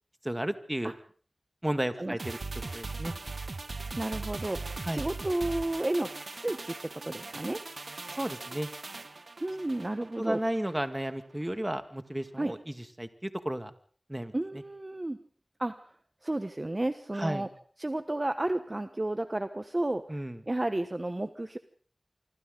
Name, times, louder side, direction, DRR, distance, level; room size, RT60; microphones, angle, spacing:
voice 1, 0.2-0.9 1.6-2.4 2.7-3.1 4.9-5.0 8.1-8.7 10.2-13.7 14.1-14.3 17.1-17.5 20.1-20.4, right 1 dB, 20° right, 9 dB, 2.3 m, -33 dB
sound 1, 2.2-10.8 11.1-11.2, right 3 dB, 80° right, 1.2 m, -40 dB
voice 2, 4.0-4.6 4.9-7.6 9.4-10.4 12.4-12.5 14.3-15.2 15.6-16.0 16.2-17.5 17.8-20.2 20.5-21.6, right 1 dB, 40° right, 10 dB, 1.2 m, -32 dB
26.0 x 25.5 x 4.0 m, 0.43 s
wide cardioid pair, 45°, 0 cm